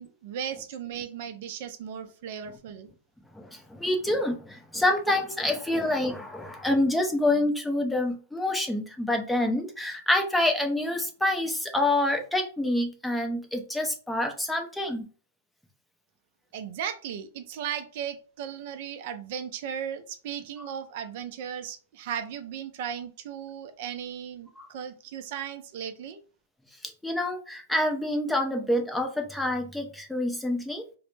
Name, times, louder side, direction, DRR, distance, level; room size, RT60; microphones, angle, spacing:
voice 1, 0.0-2.9 16.5-26.2, right 8 dB, 55° right, 8 dB, 0.4 m, -36 dB
voice 2, 3.3-15.0 20.6-20.7 24.6-24.7 26.8-30.8, left 1 dB, 5° left, 3 dB, 0.5 m, -27 dB
2.0 x 2.0 x 3.1 m, 0.38 s
hypercardioid pair, 125°, 0 cm